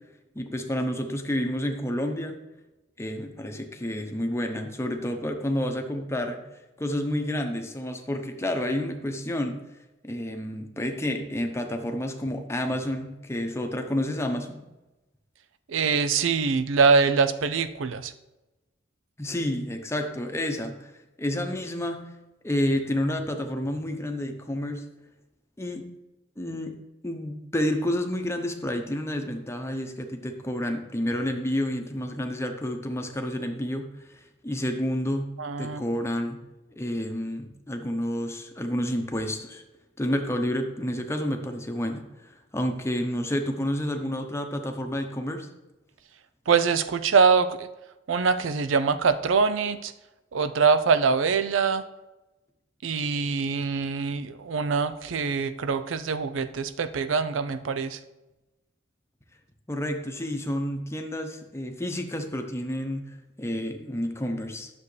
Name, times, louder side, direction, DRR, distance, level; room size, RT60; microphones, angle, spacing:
voice 1, 0.3-2.4 3.0-6.4 6.8-9.6 10.0-14.6 19.2-20.9 21.2-22.1 22.4-24.8 25.6-25.8 26.4-26.7 27.0-33.9 34.4-35.3 35.6-36.4 36.8-39.6 40.0-42.0 42.5-45.5 59.7-64.7, left 1 dB, 15° left, 4 dB, 0.8 m, -29 dB
voice 2, 15.7-18.1 35.4-35.8 46.5-47.7 48.1-49.9 50.3-51.8 52.8-58.0, right 5 dB, 85° right, 13 dB, 0.5 m, -24 dB
10.5 x 6.9 x 3.3 m, 1.0 s
head